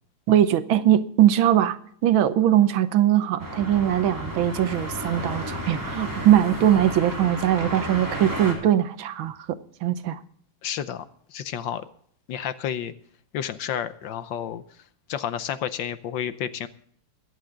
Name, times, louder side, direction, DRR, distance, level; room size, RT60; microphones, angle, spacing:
voice 1, 0.3-10.2, right 11 dB, 75° right, 12 dB, 1.5 m, -21 dB
sound 1, 3.4-8.5, equal, 10° right, 3.4 m, -32 dB
voice 2, 10.6-11.0 11.3-11.8 12.3-12.9 13.3-14.6 15.1-16.7, left 9 dB, 70° left, 12 dB, 1.4 m, -30 dB
23.0 x 8.5 x 3.8 m, 0.62 s
omnidirectional pair, 2.3 m